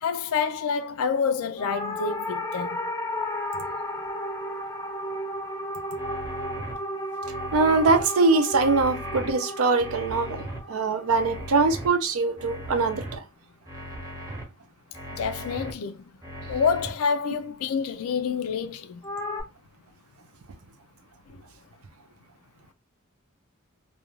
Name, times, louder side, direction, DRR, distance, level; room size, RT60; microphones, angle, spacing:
voice 1, 0.0-2.8 15.1-16.0 16.5-19.0 21.3-21.4, left 6 dB, 85° left, 0.4 m, -28 dB
sound 1, 1.6-12.1 19.0-19.4, left 1 dB, 15° left, 0.5 m, -33 dB
sound 2, 6.0-6.7 7.2-8.0 8.5-9.3 9.8-10.6 11.1-11.9 12.4-13.2 13.7-14.4 14.9-15.7 16.2-16.9, equal, 15° right, 0.8 m, -38 dB
voice 2, 7.5-10.4 10.7-13.2, right 3 dB, 80° right, 0.5 m, -22 dB
2.5 x 2.2 x 3.0 m
head